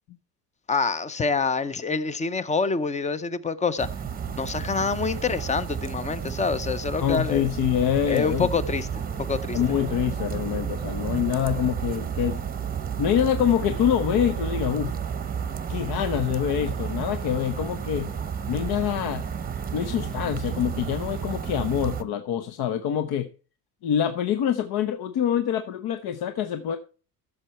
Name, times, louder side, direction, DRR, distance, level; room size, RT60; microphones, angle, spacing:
voice 1, 0.7-3.9 4.4-7.5 8.1-8.9 9.3-9.6, left 4 dB, 15° left, 0.6 m, -26 dB
sound 1, 3.8-22.0, right 7 dB, 20° right, 0.8 m, -31 dB
voice 2, 7.0-8.5 9.5-12.4 13.0-14.9 15.7-18.1 18.5-19.2 19.7-23.3 23.8-26.8, left 10 dB, 60° left, 1.0 m, -25 dB
14.0 x 6.7 x 4.3 m
cardioid pair, 140°, 43 cm